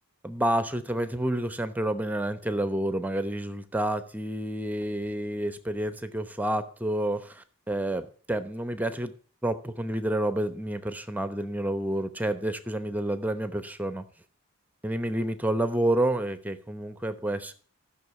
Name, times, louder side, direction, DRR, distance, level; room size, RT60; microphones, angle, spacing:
voice 1, 0.2-9.1 9.4-14.0 14.8-17.5, right 1 dB, 5° right, 11 dB, 0.9 m, -29 dB
14.5 x 6.5 x 8.1 m, 0.43 s
head